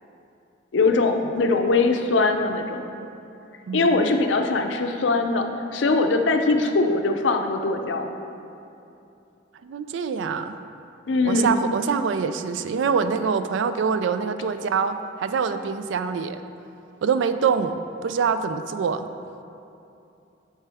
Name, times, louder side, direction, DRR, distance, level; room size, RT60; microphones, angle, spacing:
voice 1, 0.7-2.8 3.7-8.1 11.1-11.6, left 3 dB, 75° left, 5 dB, 0.5 m, -21 dB
voice 2, 3.7-4.1 9.6-10.6 11.2-16.4 17.0-19.1, right 6 dB, 75° right, 10 dB, 0.3 m, -25 dB
8.9 x 4.5 x 3.4 m, 2.7 s
head